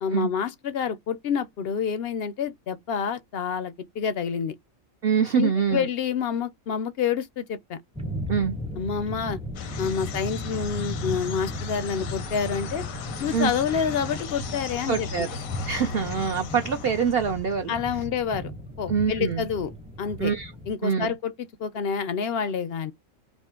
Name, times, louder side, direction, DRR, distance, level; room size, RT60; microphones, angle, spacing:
voice 1, 0.0-4.6 5.4-7.8 8.8-9.4 9.8-12.8 13.2-15.3 17.7-18.5 18.8-19.7 20.0-20.3 20.7-21.3 21.6-22.9, left 7 dB, 60° left, 0.6 m, -28 dB
voice 2, 5.0-5.9 8.3-8.5 13.3-13.5 14.9-15.3 15.7-17.8 18.9-19.4 20.2-20.5 20.8-21.1, right 6 dB, 55° right, 0.7 m, -24 dB
sound 1, 7.9-20.7, equal, 5° right, 0.5 m, -36 dB
sound 2, 9.5-17.6, left 6 dB, 85° left, 1.2 m, -38 dB
4.9 x 2.1 x 3.7 m
omnidirectional pair, 1.4 m